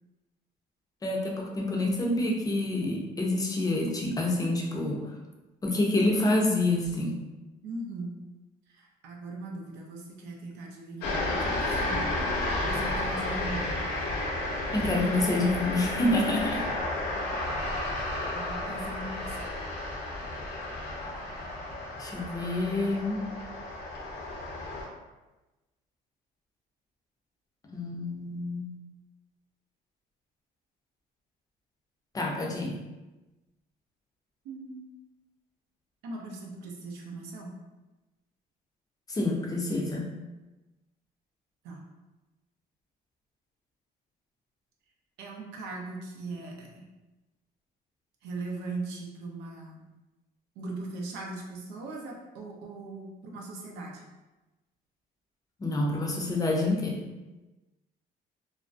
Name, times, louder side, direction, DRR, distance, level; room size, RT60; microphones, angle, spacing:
voice 1, 1.0-5.0 5.6-7.2 14.7-16.6 22.0-23.2 27.7-28.7 32.1-32.8 39.1-40.1 55.6-57.0, left 2 dB, 20° left, -1 dB, 0.5 m, -27 dB
voice 2, 7.6-8.2 8.7-12.1 12.6-13.8 18.3-19.4 34.4-34.9 36.0-37.6 41.6-41.8 45.2-46.9 48.2-49.8 50.6-54.0, right 2 dB, 90° right, -1 dB, 0.5 m, -39 dB
sound 1, 11.0-24.9, left 2 dB, 75° left, 0.7 m, -32 dB
2.5 x 2.0 x 2.4 m, 1.1 s
cardioid pair, 110°, 17 cm